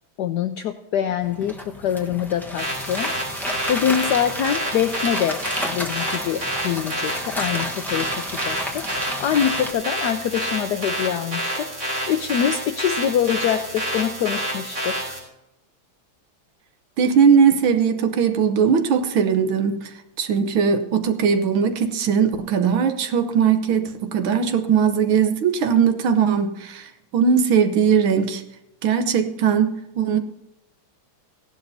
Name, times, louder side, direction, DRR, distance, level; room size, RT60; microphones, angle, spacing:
voice 1, 0.2-15.2, left 9 dB, 80° left, 8 dB, 0.9 m, -25 dB
sound 1, 1.2-9.7, left 1 dB, 5° left, 0.3 m, -32 dB
sound 2, 2.6-15.2, equal, 35° right, 4.1 m, -28 dB
voice 2, 17.0-28.4 28.8-30.2, right 7 dB, 70° right, 8 dB, 1.6 m, -19 dB
16.5 x 11.5 x 2.7 m, 0.91 s
omnidirectional pair, 2.4 m